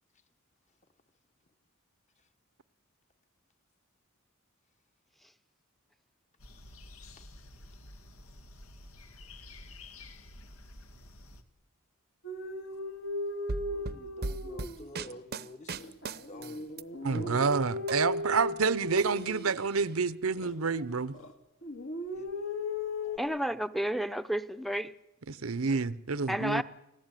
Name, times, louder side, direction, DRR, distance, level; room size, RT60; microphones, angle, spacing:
sound 1, 6.4-11.4, left 2 dB, 80° left, 2.1 m, -50 dB
sound 2, 12.2-15.2 15.7-19.9 20.4-21.3 21.6-23.2, left 2 dB, 65° left, 2.5 m, -37 dB
sound 3, 13.5-16.8 17.1-18.7 19.0-19.9, right 3 dB, 50° right, 0.8 m, -39 dB
voice 1, 13.7-16.7 22.1-22.3 23.0-23.3, left 1 dB, 35° left, 1.3 m, -49 dB
voice 2, 17.0-21.2 25.3-26.6, right 4 dB, 75° right, 0.8 m, -29 dB
voice 3, 23.2-24.9 26.3-26.6, equal, ahead, 0.8 m, -31 dB
29.5 x 16.0 x 9.2 m
head